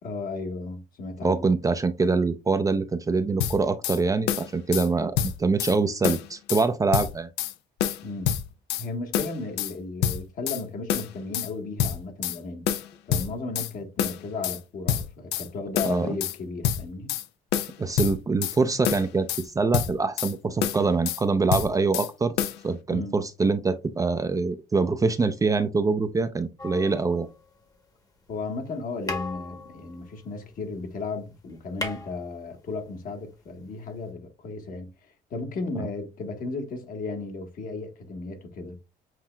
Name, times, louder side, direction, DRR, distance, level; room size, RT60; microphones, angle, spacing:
voice 1, 0.0-1.4 8.0-8.3 8.8-12.6 13.1-17.1 22.9-23.2 28.3-38.8, left 3 dB, 55° left, 1.3 m, -35 dB
voice 2, 1.2-7.3 15.8-16.1 17.8-22.3 22.6-27.3 35.8-35.9, right 4 dB, 20° right, 0.5 m, -24 dB
sound 1, 3.4-4.0 4.3-4.9 5.2-5.8 6.0-6.7 6.9-7.5 7.8-8.9 9.1-9.7 10.0-10.6 10.9-11.5 11.8-12.4 12.7-13.7 14.0-14.6 14.9-15.5 15.8-16.4 16.6-17.3 17.5-18.6 18.8-19.5 19.7-20.3 20.6-21.2 21.5-22.1 22.4-22.6, left 10 dB, 80° left, 0.6 m, -27 dB
sound 2, 26.6-27.8 28.7-28.8 29.0-30.9 31.2-31.3 31.5-32.9 34.1-34.2, left 2 dB, 20° left, 1.0 m, -37 dB
7.4 x 2.9 x 2.2 m
cardioid pair, 110°, 17 cm